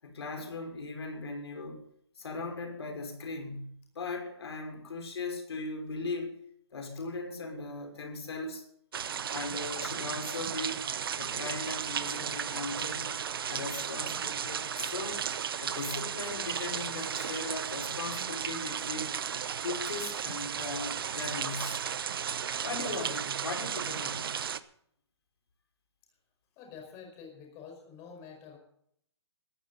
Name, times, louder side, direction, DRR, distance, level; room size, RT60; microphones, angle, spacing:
voice 1, 0.0-1.9 2.2-6.4 6.7-8.6 9.3-10.8 11.2-13.2 13.5-15.2 15.6-19.2 19.6-21.9 22.6-24.3, left 3 dB, 70° left, 5.4 m, -38 dB
sound 1, 8.9-24.6, right 8 dB, 55° right, 1.0 m, -35 dB
voice 2, 26.5-28.6, left 6 dB, 20° left, 5.1 m, -48 dB
17.5 x 14.5 x 4.1 m
hypercardioid pair, 170°, 14 cm